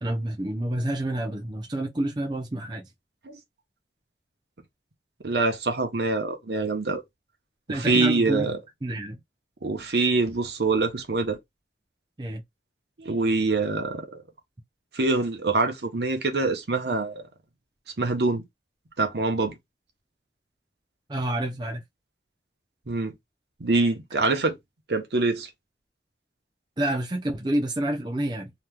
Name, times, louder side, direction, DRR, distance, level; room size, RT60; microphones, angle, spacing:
voice 1, 0.0-2.9 7.7-8.5 8.8-9.2 12.2-12.4 21.1-21.8 26.8-28.5, right 1 dB, 25° right, 0.6 m, -28 dB
voice 2, 5.2-7.0 7.7-8.5 9.6-11.4 13.0-14.2 14.9-17.2 18.0-18.4 19.0-19.6 22.9-23.1 23.6-24.6 24.9-25.5, right 3 dB, 65° right, 0.8 m, -25 dB
2.9 x 2.3 x 3.4 m
head